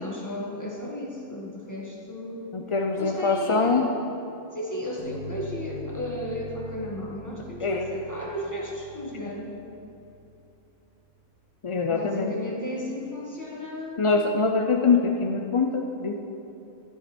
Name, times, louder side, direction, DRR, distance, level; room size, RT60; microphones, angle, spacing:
voice 1, 0.0-2.5 2.9-3.9 4.5-9.6 11.9-14.1, left 1 dB, 15° left, -3 dB, 1.7 m, -34 dB
voice 2, 2.5-3.9 7.6-7.9 11.6-12.3 14.0-16.2, left 4 dB, 50° left, 2 dB, 0.3 m, -24 dB
sound 1, 5.0-10.5, left 1 dB, 15° right, 2.2 m, -42 dB
11.5 x 11.0 x 4.4 m, 2.9 s
omnidirectional pair, 1.4 m